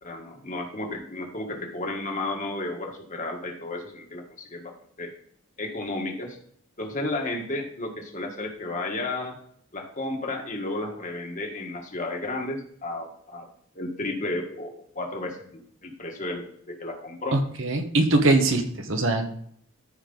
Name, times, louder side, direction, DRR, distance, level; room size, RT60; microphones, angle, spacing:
voice 1, 0.0-5.1 5.6-6.4 6.8-9.4 9.7-13.5 13.7-17.4, left 2 dB, 35° left, 1 dB, 1.7 m, -33 dB
voice 2, 17.3-19.3, right 2 dB, 60° right, 5 dB, 1.4 m, -22 dB
13.5 x 5.3 x 4.0 m, 0.64 s
head